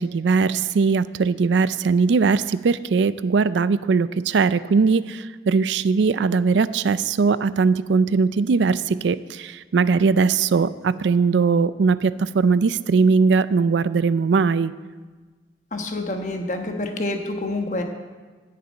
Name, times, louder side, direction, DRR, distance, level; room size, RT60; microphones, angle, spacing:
voice 1, 0.0-14.7, right 4 dB, 80° right, 16 dB, 0.4 m, -20 dB
voice 2, 15.7-17.8, left 2 dB, 40° left, 4 dB, 1.2 m, -27 dB
10.5 x 6.8 x 8.6 m, 1.4 s
head